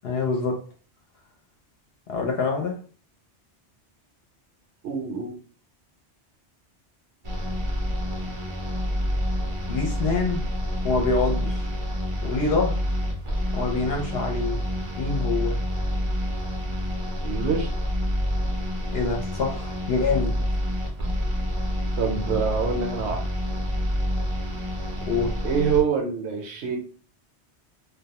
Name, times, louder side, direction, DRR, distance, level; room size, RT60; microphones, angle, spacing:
voice 1, 0.0-0.6 2.1-2.8 9.7-10.4 10.8-11.6 12.2-12.8 13.5-14.6 15.0-15.6 18.9-20.4 25.1-25.4, left 4 dB, 70° left, 0.8 m, -25 dB
voice 2, 4.8-5.4 17.2-17.7 22.0-23.3 25.4-26.8, right 6 dB, 75° right, 0.9 m, -25 dB
sound 1, 7.2-25.8, equal, 45° right, 0.4 m, -28 dB
2.2 x 2.1 x 2.8 m
omnidirectional pair, 1.1 m